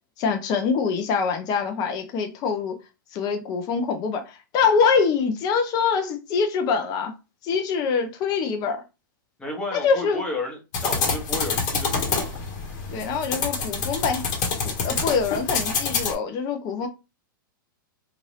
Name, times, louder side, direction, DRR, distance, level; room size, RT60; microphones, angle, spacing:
voice 1, 0.2-2.8 3.1-7.1 7.4-8.8 9.7-10.2 12.9-14.2 14.6-16.9, left 5 dB, 35° left, 0.7 m, -24 dB
voice 2, 9.4-12.3, left 2 dB, 10° left, 1.2 m, -32 dB
sound 1, 10.7-16.1, left 5 dB, 50° left, 1.2 m, -27 dB
2.7 x 2.5 x 3.2 m
hypercardioid pair, 120°, 12 cm